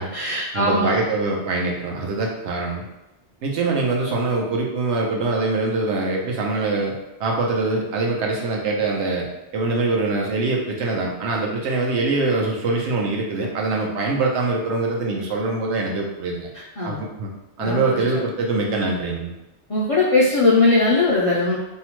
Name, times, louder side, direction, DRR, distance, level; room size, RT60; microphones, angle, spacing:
voice 1, 0.0-1.0 16.8-17.0 17.6-18.2 19.7-21.6, left 2 dB, 55° left, -7 dB, 0.4 m, -20 dB
voice 2, 0.5-2.9 3.4-9.3 9.5-16.5 16.8-17.3 17.6-19.3, right 3 dB, 85° right, -1 dB, 0.9 m, -23 dB
2.7 x 2.1 x 2.9 m, 0.94 s
omnidirectional pair, 1.1 m